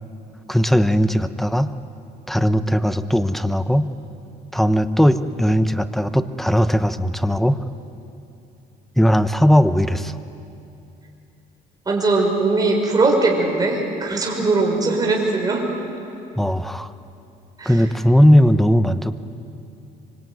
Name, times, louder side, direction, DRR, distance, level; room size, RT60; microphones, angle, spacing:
voice 1, 0.5-1.7 2.3-3.9 4.5-7.6 9.0-10.2 16.4-16.9 17.6-19.1, equal, ahead, 11 dB, 1.0 m, -18 dB
voice 2, 11.9-15.7 17.6-17.8, right 3 dB, 20° right, -1 dB, 6.0 m, -20 dB
25.0 x 24.5 x 9.5 m, 2.7 s
cardioid pair, 110°, 17 cm